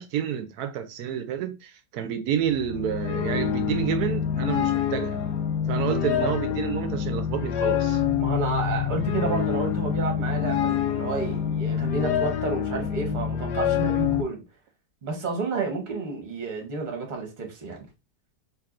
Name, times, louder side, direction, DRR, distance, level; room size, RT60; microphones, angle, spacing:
voice 1, 0.0-5.2 5.7-8.0, right 9 dB, 70° right, 1.0 m, -29 dB
sound 1, 2.4-14.2, left 8 dB, 80° left, 1.2 m, -26 dB
voice 2, 5.7-6.3 8.2-14.4 15.0-17.9, right 4 dB, 35° right, 1.0 m, -31 dB
4.7 x 2.9 x 2.4 m
omnidirectional pair, 1.8 m